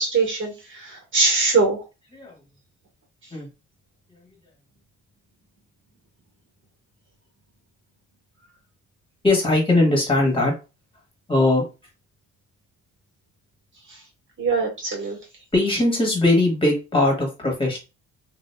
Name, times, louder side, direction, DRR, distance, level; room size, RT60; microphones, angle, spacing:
voice 1, 0.0-1.8 13.9-14.0 14.4-15.2, right 3 dB, 40° right, 0 dB, 1.5 m, -22 dB
voice 2, 9.2-10.5 11.3-11.6 15.5-17.8, left 2 dB, 15° left, 0 dB, 1.4 m, -20 dB
2.8 x 2.4 x 2.2 m, 0.29 s
cardioid pair, 90°, 30 cm